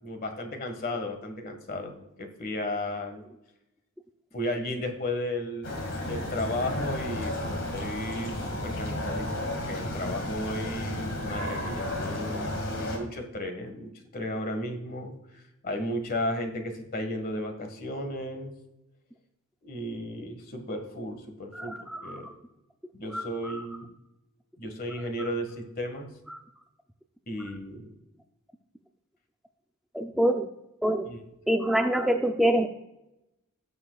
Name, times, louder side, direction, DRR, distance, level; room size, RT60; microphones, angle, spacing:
voice 1, 0.0-3.2 4.3-5.8 6.0-18.5 19.6-21.7 22.0-22.3 22.9-23.9 24.6-26.1 27.3-27.9 31.0-31.2, left 1 dB, 45° left, 5 dB, 1.6 m, -34 dB
sound 1, 5.6-13.0, left 1 dB, 60° left, 2.1 m, -33 dB
voice 2, 21.5-22.3 23.1-23.6 26.3-26.4 29.9-30.5 30.8-31.1 31.5-32.7, right 1 dB, ahead, 4 dB, 0.4 m, -26 dB
17.5 x 6.9 x 2.4 m, 0.91 s
head